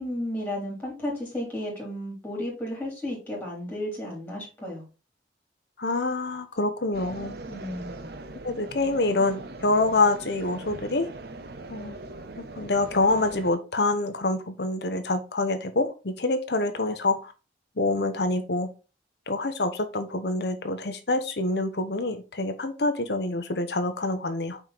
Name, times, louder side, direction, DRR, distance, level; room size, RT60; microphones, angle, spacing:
voice 1, 0.0-4.8 7.5-8.1, left 1 dB, 10° left, 3.0 m, -33 dB
voice 2, 5.8-7.3 8.4-11.1 11.7-12.0 12.4-17.3 17.8-18.7 19.3-24.6, left 2 dB, 65° left, 1.0 m, -26 dB
sound 1, 6.9-13.5, right 2 dB, 60° right, 0.7 m, -40 dB
5.5 x 4.5 x 4.0 m
head